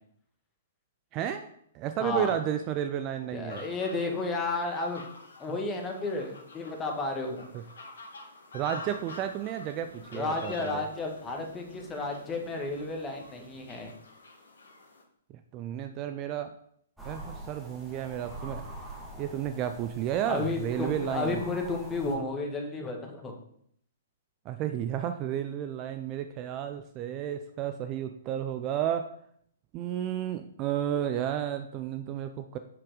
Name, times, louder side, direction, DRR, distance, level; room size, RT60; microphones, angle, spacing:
voice 1, 1.1-3.6 7.5-7.6 8.5-10.8 15.3-16.6 17.0-18.6 19.2-21.4 24.4-29.1 29.7-32.6, right 10 dB, 30° right, 9 dB, 0.5 m, -32 dB
voice 2, 2.0-2.3 3.3-5.0 5.4-7.5 10.1-13.9 20.2-23.4, left 3 dB, 15° left, 2 dB, 1.7 m, -32 dB
sound 1, 3.5-15.0, left 2 dB, 65° left, 1.6 m, -49 dB
sound 2, 8.8-14.0, right 2 dB, 70° right, 2.8 m, -54 dB
sound 3, 17.0-22.1, right 1 dB, 5° right, 2.3 m, -44 dB
7.9 x 5.9 x 4.9 m, 0.68 s
figure-of-eight pair, 115°, 0 cm